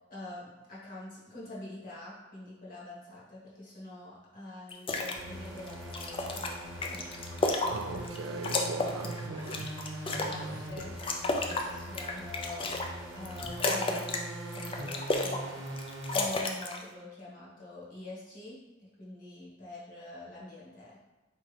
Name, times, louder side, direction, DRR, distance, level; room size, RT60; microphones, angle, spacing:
voice 1, 0.1-7.1 10.2-11.0 11.4-12.7 13.1-14.2 14.5-15.6 16.1-18.6 19.0-21.0, left 2 dB, 45° left, 1.5 m, -45 dB
sound 1, 4.7-5.2 5.6-8.2 8.4-10.4 10.8-12.9 13.2-14.2 14.5-15.4 15.7-16.8, left 2 dB, 25° left, 0.3 m, -32 dB
sound 2, 5.2-16.3, right 1 dB, 65° right, 0.9 m, -41 dB
voice 2, 7.7-9.7 10.1-10.7, right 3 dB, 85° right, 0.4 m, -41 dB
4.1 x 3.5 x 3.3 m
head